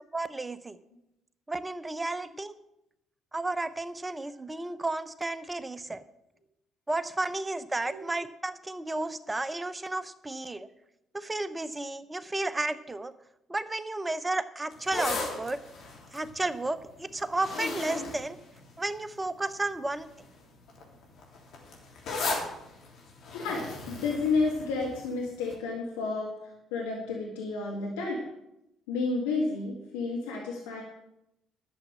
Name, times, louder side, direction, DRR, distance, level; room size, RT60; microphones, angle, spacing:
voice 1, 0.1-0.8 1.5-2.5 3.3-6.0 6.9-10.7 11.1-13.1 13.5-15.6 16.1-18.4 18.8-20.1, right 2 dB, 20° right, 14 dB, 0.8 m, -32 dB
sound 1, 14.7-19.2 19.9-20.2 20.5-25.1 25.5-25.6, left 3 dB, 60° left, 3.3 m, -36 dB
voice 2, 23.3-26.3 26.7-28.2 28.9-30.8, left 3 dB, 80° left, -2 dB, 2.0 m, -31 dB
11.5 x 7.3 x 7.5 m, 0.85 s
hypercardioid pair, 50°, 0 cm